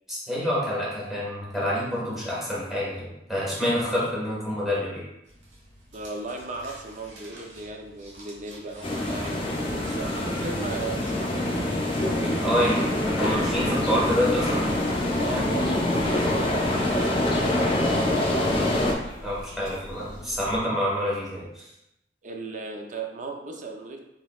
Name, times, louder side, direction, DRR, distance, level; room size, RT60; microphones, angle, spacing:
voice 1, 0.1-5.0 12.4-12.8 13.2-14.6 19.2-21.7, equal, ahead, -8 dB, 1.5 m, -27 dB
sound 1, 5.2-15.5, equal, 85° right, 1.2 m, -46 dB
voice 2, 5.9-12.4 15.2-18.5 22.2-24.0, right 3 dB, 45° right, 2 dB, 0.5 m, -37 dB
sound 2, 8.8-18.9, left 1 dB, 30° left, 0.6 m, -25 dB
sound 3, 12.9-20.6, left 1 dB, 90° left, 0.7 m, -43 dB
3.8 x 3.8 x 2.4 m, 0.88 s
head